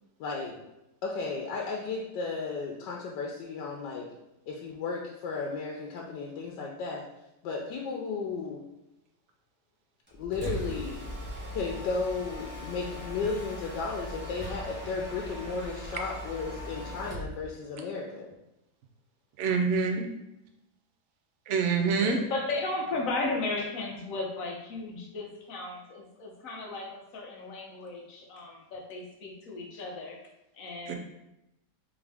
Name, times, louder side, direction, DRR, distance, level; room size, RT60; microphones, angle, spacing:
voice 1, 0.2-0.6 1.0-4.1 4.5-7.0 7.4-8.6 10.1-11.1 11.5-18.3 22.0-22.3, left 4 dB, 85° left, -1 dB, 1.2 m, -34 dB
Mechanisms, 10.1-17.3, equal, 10° right, 0.6 m, -39 dB
voice 2, 19.4-20.1 21.5-22.2 30.9-31.0, right 5 dB, 75° right, 3 dB, 0.6 m, -26 dB
voice 3, 22.3-30.2 30.5-30.9, left 2 dB, 60° left, 0 dB, 1.1 m, -35 dB
3.6 x 3.5 x 3.3 m, 0.89 s
omnidirectional pair, 1.8 m